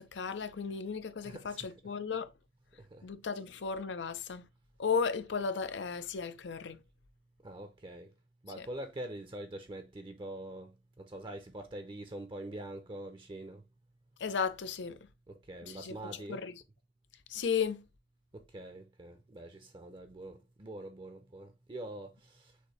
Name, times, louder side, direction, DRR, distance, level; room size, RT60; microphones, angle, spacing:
voice 1, 0.0-2.3 3.0-4.5 4.8-6.8 8.6-8.7 14.2-15.1 15.7-16.6 17.3-17.8, left 6 dB, 85° left, 0.6 m, -35 dB
voice 2, 1.2-1.9 2.8-3.1 3.3-3.4 7.4-8.1 8.4-13.6 15.3-16.4 18.3-22.5, right 1 dB, 30° right, 0.6 m, -45 dB
6.5 x 2.7 x 3.0 m
head